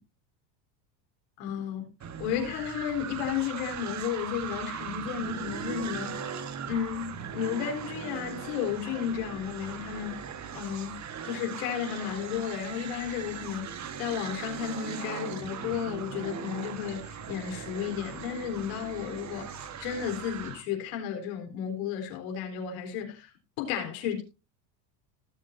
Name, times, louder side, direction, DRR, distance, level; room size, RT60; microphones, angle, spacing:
voice 1, 1.4-1.9 2.2-6.1 6.7-10.2 10.5-11.0 11.2-13.7 14.0-23.3 23.6-24.2, left 8 dB, 75° left, 4.1 m, -33 dB
sound 1, 2.0-20.6, right 7 dB, 35° right, 1.5 m, -39 dB
19.0 x 7.5 x 2.7 m
supercardioid pair, 105°, 49 cm